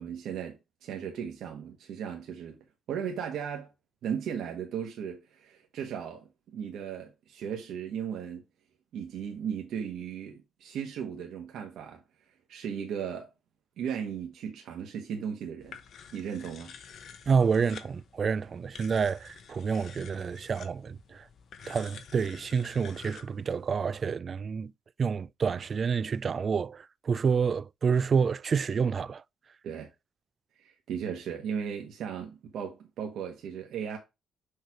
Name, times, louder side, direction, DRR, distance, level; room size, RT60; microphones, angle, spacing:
voice 1, 0.0-2.6 2.9-3.7 4.0-8.4 8.9-12.0 12.5-13.3 13.8-15.8 16.1-16.7 29.6-29.9 30.6-34.0, right 8 dB, 80° right, 1.2 m, -36 dB
sound 1, 15.6-24.2, left 7 dB, 65° left, 1.0 m, -50 dB
voice 2, 17.3-21.3 21.7-24.7 25.0-29.2, right 6 dB, 45° right, 0.3 m, -28 dB
6.5 x 3.3 x 4.7 m
cardioid pair, 90°, 0 cm